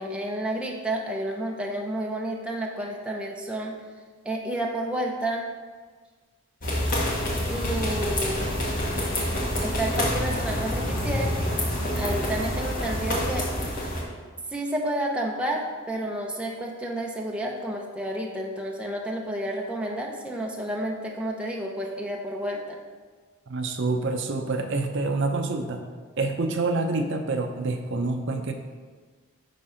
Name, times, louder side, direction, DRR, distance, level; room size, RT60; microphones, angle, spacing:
voice 1, 0.0-3.8 4.2-5.5 7.5-8.6 9.6-11.3 11.9-13.5 14.5-22.8, right 1 dB, 5° right, -1 dB, 0.6 m, -30 dB
sound 1, 6.6-14.0, left 1 dB, 40° left, 1.4 m, -27 dB
voice 2, 23.5-25.8 26.2-28.5, right 3 dB, 55° right, 5 dB, 0.6 m, -27 dB
9.2 x 3.7 x 5.6 m, 1.5 s
head